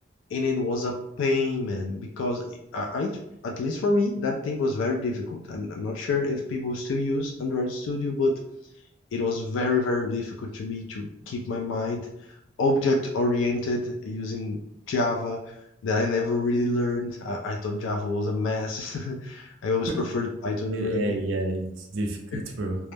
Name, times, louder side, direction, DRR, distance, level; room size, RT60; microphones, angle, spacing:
voice 1, 0.3-3.2 3.4-8.4 9.1-12.1 12.6-14.6 14.9-15.5 15.8-21.2 22.3-22.4, left 2 dB, 80° left, 2 dB, 0.3 m, -27 dB
voice 2, 20.7-22.8, right 1 dB, 80° right, 2 dB, 0.4 m, -29 dB
2.2 x 2.0 x 3.1 m, 0.79 s
head